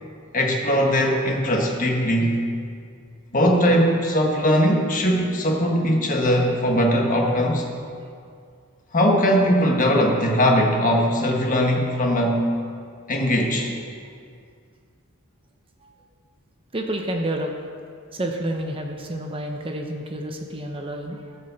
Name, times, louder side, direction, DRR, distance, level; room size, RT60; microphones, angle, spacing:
voice 1, 0.3-2.4 3.3-7.7 8.9-12.5 13.1-13.7, equal, 35° left, 1 dB, 1.4 m, -20 dB
voice 2, 16.7-17.5 18.1-21.4, right 1 dB, 25° right, 2 dB, 0.8 m, -29 dB
16.0 x 5.3 x 7.0 m, 2.2 s
head